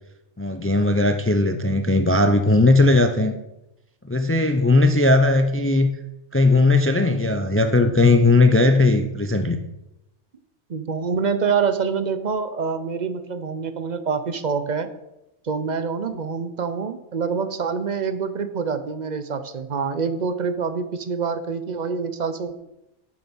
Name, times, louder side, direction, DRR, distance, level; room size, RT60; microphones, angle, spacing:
voice 1, 0.4-3.3 4.1-5.9 6.3-9.6, left 2 dB, 15° left, 7 dB, 0.5 m, -18 dB
voice 2, 10.7-14.9 15.4-22.6, right 5 dB, 45° right, 11 dB, 0.8 m, -26 dB
9.1 x 7.2 x 6.2 m, 0.91 s
omnidirectional pair, 1.2 m